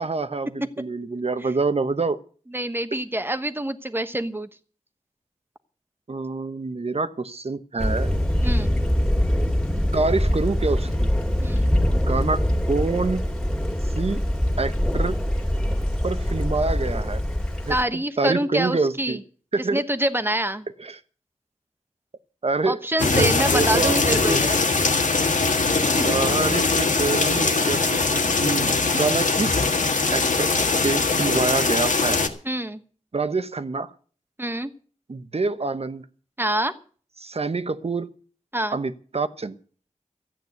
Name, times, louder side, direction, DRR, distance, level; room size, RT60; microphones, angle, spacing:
voice 1, 0.0-2.2 6.1-8.2 9.9-11.1 11.9-12.4 12.7-13.2 13.9-14.2 14.6-15.2 16.0-17.2 17.6-19.2 19.5-19.8 20.8-21.0 22.4-22.8 23.1-24.4 26.0-29.7 30.1-30.5 30.8-32.2 33.1-33.9 35.1-36.0 37.2-38.1 38.7-39.6, right 3 dB, 50° right, 12 dB, 1.0 m, -26 dB
voice 2, 2.5-4.5 8.4-8.7 11.4-11.7 17.7-19.2 19.7-20.6 22.6-24.5 26.0-26.1 32.4-32.8 34.4-34.7 36.4-36.8 38.5-38.8, right 1 dB, 15° right, 10 dB, 1.1 m, -26 dB
Thunder, 7.8-17.8, equal, 5° left, 2.4 m, -23 dB
sound 1, 23.0-32.3, left 3 dB, 80° left, 1.7 m, -21 dB
13.5 x 9.0 x 8.0 m, 0.43 s
wide cardioid pair, 75°, 13 cm